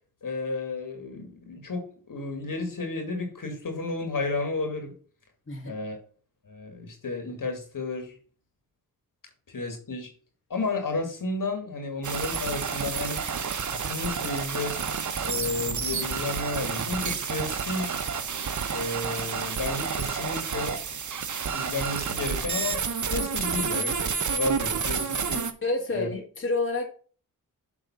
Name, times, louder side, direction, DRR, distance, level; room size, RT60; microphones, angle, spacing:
voice 1, 0.2-4.9 5.6-6.0 6.5-8.1 9.5-10.1 10.5-13.2 13.6-14.8 15.2-18.0 18.7-20.8 21.5-22.8 23.1-25.4 25.9-26.1, left 3 dB, 60° left, 2.2 m, -32 dB
sound 1, 12.0-25.5, right 6 dB, 55° right, 1.0 m, -30 dB
voice 2, 25.6-26.9, left 3 dB, 35° left, 1.8 m, -29 dB
7.5 x 3.7 x 5.6 m
cardioid pair, 70°, 36 cm